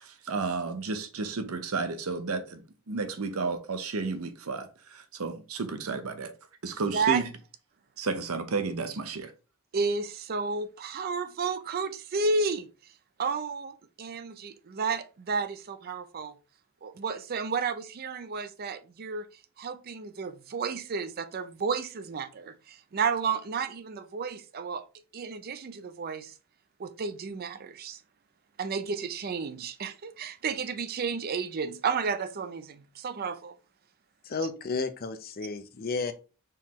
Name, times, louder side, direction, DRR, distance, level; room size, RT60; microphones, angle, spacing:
voice 1, 0.0-6.3 6.6-7.2 8.0-9.3, right 4 dB, 80° right, 0.7 m, -32 dB
voice 2, 9.7-12.7 13.2-16.3 16.8-19.3 19.6-24.8 25.1-26.3 26.8-28.0 28.6-33.5, right 5 dB, 45° right, 0.5 m, -32 dB
voice 3, 34.3-36.1, left 4 dB, 45° left, 0.6 m, -32 dB
4.5 x 3.7 x 3.0 m
head